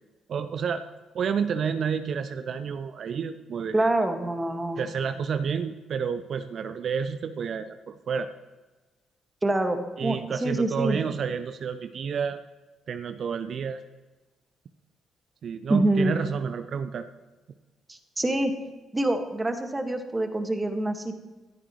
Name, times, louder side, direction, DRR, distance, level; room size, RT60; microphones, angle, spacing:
voice 1, 0.3-0.8 1.1-3.9 4.8-8.3 10.0-12.4 12.9-13.8 15.4-17.1, right 6 dB, 55° right, 10 dB, 0.6 m, -30 dB
voice 2, 3.7-4.8 9.4-11.0 15.7-16.2 17.9-18.6 18.9-21.2, right 2 dB, 20° right, 6 dB, 1.9 m, -26 dB
16.0 x 13.5 x 3.2 m, 1.2 s
figure-of-eight pair, 40°, 0 cm